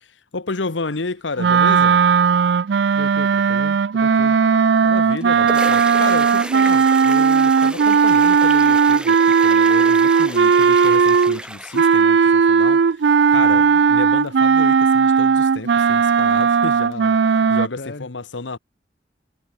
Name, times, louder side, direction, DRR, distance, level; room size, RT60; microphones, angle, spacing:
voice 1, 0.0-2.0 4.8-18.6, left 3 dB, 85° left, 1.2 m, -31 dB
sound 1, 1.4-11.4 11.7-17.7, right 6 dB, 65° right, 0.4 m, -16 dB
voice 2, 2.9-4.4 13.3-13.9 17.8-18.1, left 2 dB, 60° left, 1.0 m, -37 dB
sound 2, 5.0-12.5, right 1 dB, 5° right, 3.5 m, -33 dB
head